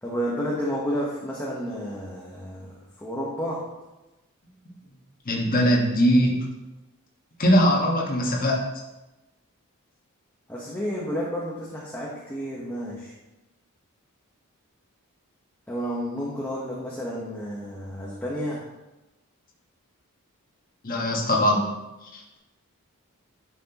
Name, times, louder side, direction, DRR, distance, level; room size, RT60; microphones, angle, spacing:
voice 1, 0.0-3.7 10.5-13.1 15.7-18.6, equal, 10° left, -5 dB, 1.1 m, -31 dB
voice 2, 5.2-6.3 7.4-8.6 20.8-21.6 22.1-22.4, equal, 40° left, -2 dB, 1.6 m, -21 dB
11.0 x 6.1 x 3.0 m, 1.0 s
head